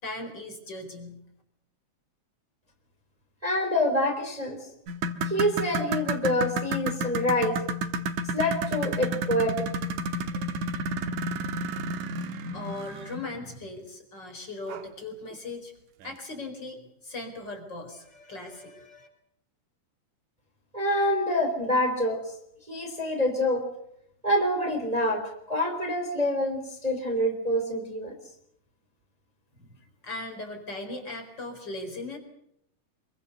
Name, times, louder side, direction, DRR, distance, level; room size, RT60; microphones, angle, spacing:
voice 1, 0.0-1.2 12.5-15.7 16.0-19.1 29.6-32.2, left 2 dB, 35° left, 3 dB, 5.0 m, -39 dB
voice 2, 3.4-4.6 5.2-7.6 8.3-9.6 20.7-22.2 22.7-23.6 24.2-25.2 25.5-28.1, left 1 dB, 10° right, 2 dB, 3.6 m, -26 dB
sound 1, 4.9-13.3 14.7-14.8 15.3-15.4 16.0-16.1, right 1 dB, 85° right, 2.7 m, -31 dB
26.0 x 23.5 x 6.9 m, 0.74 s
omnidirectional pair, 3.3 m